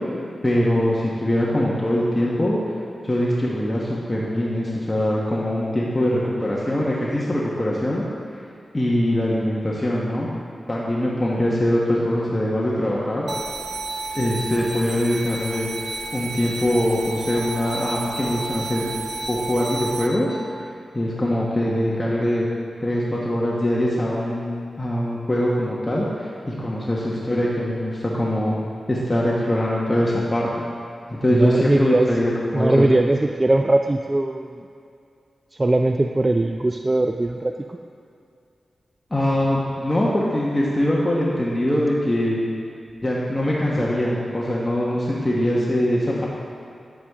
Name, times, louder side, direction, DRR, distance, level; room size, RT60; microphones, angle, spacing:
voice 1, 0.4-2.6 3.0-8.0 8.7-10.3 10.7-13.3 14.1-18.9 19.3-20.3 20.9-22.5 22.8-28.6 28.9-30.5 31.1-32.9 39.1-42.4 43.0-46.3, left 1 dB, 20° left, -6 dB, 1.3 m, -22 dB
sound 1, 13.3-20.1, right 3 dB, 45° right, 0.8 m, -31 dB
voice 2, 31.3-32.1 32.5-34.7 35.5-37.8, right 2 dB, 30° right, 5 dB, 0.4 m, -20 dB
9.5 x 8.6 x 3.7 m, 2.4 s
cardioid pair, 60°, 0 cm